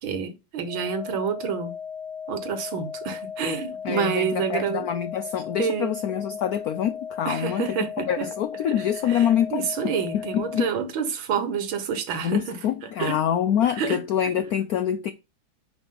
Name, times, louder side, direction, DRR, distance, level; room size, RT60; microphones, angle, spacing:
voice 1, 0.0-1.8 2.3-4.9 5.6-6.0 7.3-8.3 8.7-12.6 13.0-13.2 13.8-14.0, right 6 dB, 85° right, 2.1 m, -28 dB
sound 1, 0.7-10.7, left 7 dB, 40° left, 0.6 m, -36 dB
voice 2, 3.8-10.7 12.2-15.1, left 9 dB, 65° left, 0.9 m, -26 dB
9.7 x 5.2 x 3.8 m
omnidirectional pair, 2.1 m